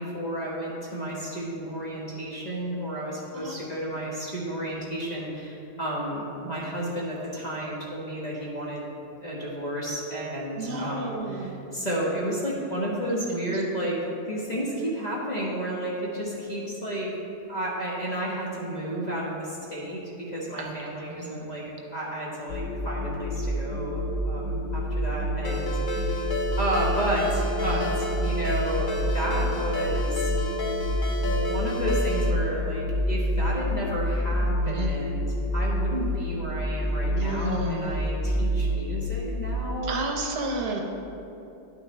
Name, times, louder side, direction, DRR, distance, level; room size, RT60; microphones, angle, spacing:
voice 1, 0.0-8.8 9.2-17.1 17.5-26.2 26.6-30.3 31.1-39.9, right 1 dB, 25° left, -6 dB, 1.3 m, -32 dB
voice 2, 10.6-11.5 20.6-20.8 21.2-21.3 27.6-27.9 34.7-35.0 37.2-38.0 39.9-40.8, right 2 dB, 75° right, 2 dB, 1.3 m, -31 dB
sound 1, 22.5-39.6, equal, 70° left, 1.3 m, -28 dB
Ringtone, 25.4-32.3, left 1 dB, 50° left, 0.6 m, -31 dB
11.0 x 6.0 x 3.3 m, 2.9 s
omnidirectional pair, 1.8 m